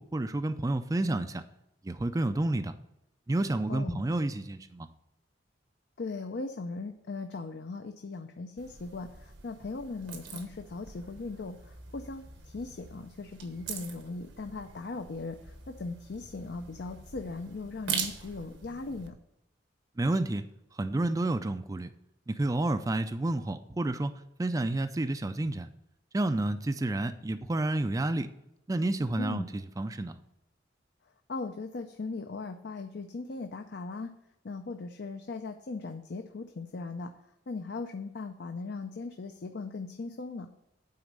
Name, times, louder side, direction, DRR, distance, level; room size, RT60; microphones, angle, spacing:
voice 1, 0.0-1.4 1.8-2.7 3.3-4.9 20.0-20.4 20.8-21.9 22.3-25.7 26.1-28.3 28.7-30.1, right 2 dB, 20° right, 9 dB, 0.3 m, -30 dB
voice 2, 3.7-4.1 6.0-19.1 29.2-29.4 31.3-34.2 34.4-37.1 37.5-40.5, left 3 dB, 60° left, 6 dB, 0.5 m, -39 dB
sound 1, 8.6-19.1, right 6 dB, 80° right, 1.1 m, -42 dB
9.5 x 4.0 x 6.6 m, 0.83 s
head